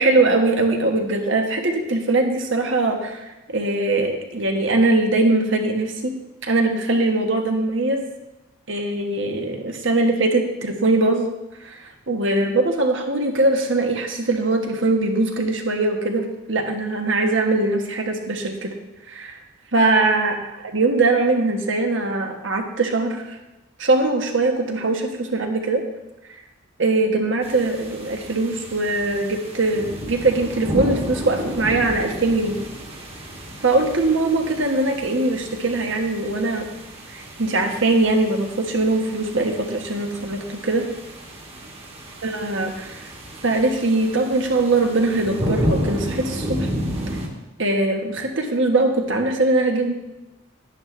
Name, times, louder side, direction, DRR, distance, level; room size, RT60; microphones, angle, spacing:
voice 1, 0.0-6.1 6.4-8.0 8.7-11.3 11.6-11.8 12.1-18.7 19.1-19.4 19.7-20.3 20.7-23.4 23.8-25.8 26.8-32.6 33.6-36.6 37.1-40.9 42.2-43.1 43.4-46.7 47.6-49.9, right 2 dB, 65° right, 3 dB, 1.4 m, -21 dB
sound 1, 27.4-47.3, equal, 30° right, 1.5 m, -32 dB
11.0 x 10.5 x 3.3 m, 0.98 s
head